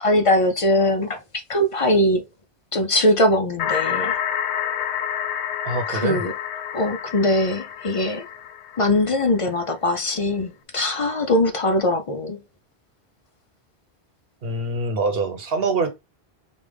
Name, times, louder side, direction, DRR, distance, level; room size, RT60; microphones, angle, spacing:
voice 1, 0.0-1.2 1.5-2.2 2.7-4.1 5.9-6.3 6.7-8.2 8.8-12.4, left 1 dB, 45° left, 0.4 m, -21 dB
sound 1, 3.6-9.3, left 9 dB, 90° left, 0.9 m, -28 dB
voice 2, 5.6-6.3 14.4-15.9, right 3 dB, 65° right, 1.1 m, -24 dB
5.0 x 2.4 x 3.4 m
omnidirectional pair, 1.1 m